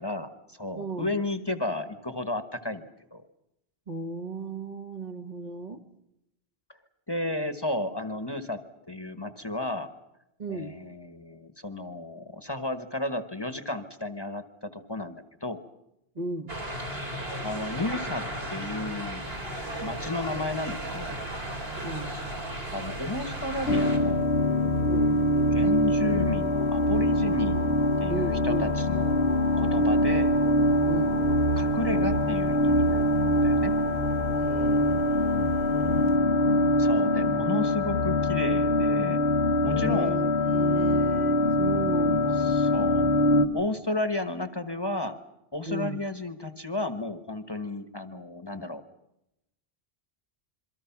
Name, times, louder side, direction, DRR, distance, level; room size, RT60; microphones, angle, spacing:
voice 1, 0.0-3.2 7.1-8.6 8.9-9.9 10.5-15.6 17.4-19.2 19.8-21.2 22.7-24.3 25.5-27.6 28.0-29.2 29.6-30.3 31.6-33.8 36.8-39.2 39.6-40.2 42.4-43.1 43.5-45.2 45.5-48.8, left 2 dB, 25° left, 10 dB, 1.3 m, -33 dB
voice 2, 0.7-1.2 3.9-6.0 10.4-10.9 16.1-16.7 21.8-22.2 24.8-25.3 28.1-28.7 30.9-31.3 34.4-36.3 39.6-42.7 45.7-46.0, right 1 dB, 40° right, 5 dB, 1.5 m, -36 dB
sound 1, 16.5-24.0, right 1 dB, 65° right, 4.5 m, -35 dB
sound 2, 19.3-36.2, right 6 dB, 85° right, 1.4 m, -42 dB
sound 3, 23.7-43.5, left 1 dB, 80° left, 1.4 m, -24 dB
27.0 x 23.5 x 5.9 m, 0.86 s
omnidirectional pair, 1.1 m